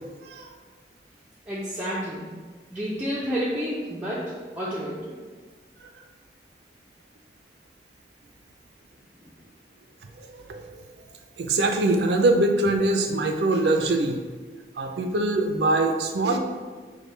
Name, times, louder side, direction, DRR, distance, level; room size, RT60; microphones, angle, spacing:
voice 1, 1.5-2.3 2.7-5.2, equal, 10° right, -8 dB, 0.4 m, -30 dB
voice 2, 10.2-10.6 11.4-14.2 14.8-16.4, right 2 dB, 70° right, 4 dB, 0.4 m, -23 dB
5.0 x 2.2 x 3.2 m, 1.4 s
head